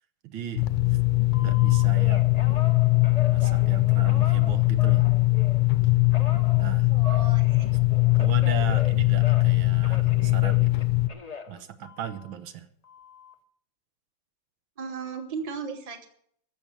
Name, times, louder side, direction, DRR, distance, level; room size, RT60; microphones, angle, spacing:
voice 1, 0.2-1.0 1.4-2.3 3.3-5.1 6.6-6.9 8.2-10.9 11.5-12.7, right 9 dB, 75° right, 10 dB, 1.7 m, -37 dB
sound 1, 0.6-11.1, left 21 dB, 70° left, 1.4 m, -21 dB
Telephone, 1.3-5.7 6.1-9.6 9.8-12.3 12.8-13.3, left 6 dB, 45° left, 0.5 m, -40 dB
voice 2, 6.9-7.6 14.8-16.1, right 5 dB, 20° right, 6 dB, 1.2 m, -36 dB
14.5 x 6.6 x 8.9 m, 0.65 s
omnidirectional pair, 2.3 m